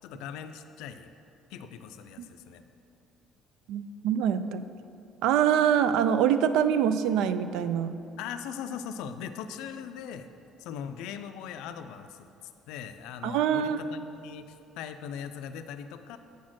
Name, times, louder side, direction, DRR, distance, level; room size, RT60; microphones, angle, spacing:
voice 1, 0.0-1.1 1.5-2.6 8.2-10.3 10.6-12.3 12.7-16.2, left 8 dB, 85° left, 9 dB, 0.4 m, -40 dB
voice 2, 3.7-4.6 5.2-7.9 13.2-13.8, right 9 dB, 75° right, 12 dB, 0.3 m, -24 dB
8.1 x 4.3 x 6.1 m, 2.6 s
cardioid pair, 180°, 0 cm